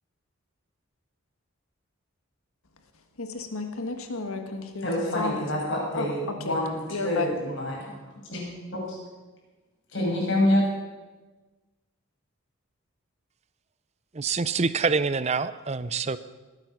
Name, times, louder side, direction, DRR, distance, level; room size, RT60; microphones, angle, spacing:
voice 1, 3.2-5.4 5.9-6.6 6.9-7.3, left 3 dB, 80° left, 6 dB, 1.6 m, -32 dB
voice 2, 4.8-7.9 8.3-8.4 8.7-9.0 9.9-10.7, left 1 dB, 55° left, -3 dB, 6.1 m, -27 dB
voice 3, 14.1-16.2, right 4 dB, 30° right, 15 dB, 0.5 m, -26 dB
20.0 x 9.0 x 6.0 m, 1.2 s
head